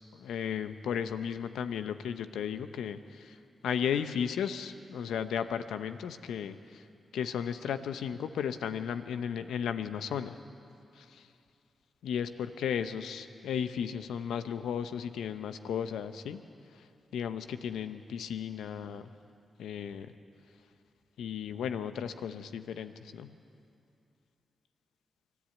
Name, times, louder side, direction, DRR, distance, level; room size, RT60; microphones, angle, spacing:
voice 1, 0.1-3.4 3.6-6.8 7.1-10.4 11.0-11.3 12.0-16.4 17.1-19.1 19.6-20.1 21.2-23.3, left 8 dB, 85° left, 11 dB, 0.8 m, -35 dB
24.5 x 13.5 x 8.6 m, 2.6 s
supercardioid pair, 40°, 0 cm